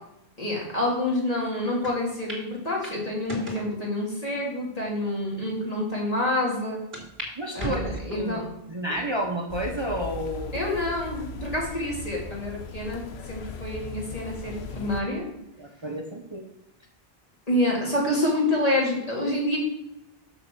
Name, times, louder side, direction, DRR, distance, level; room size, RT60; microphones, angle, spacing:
voice 1, 0.4-6.8 7.5-8.4 10.5-15.3 17.5-19.6, left 1 dB, 35° left, -4 dB, 2.8 m, -27 dB
sound 1, 1.8-1.9 2.3-2.4 2.8-3.7 4.4-4.5 5.2-5.3 5.6-5.7 6.9-7.3 7.6-8.3 8.9-9.3 9.9-10.0 11.1-11.5, right 1 dB, 65° right, 3.1 m, -36 dB
voice 2, 7.4-8.4 8.7-10.5 15.6-16.4, right 1 dB, 30° right, 1 dB, 1.0 m, -31 dB
sound 2, 9.5-15.0, left 4 dB, 90° left, 1.0 m, -38 dB
6.8 x 6.1 x 6.8 m, 0.86 s
omnidirectional pair, 1.0 m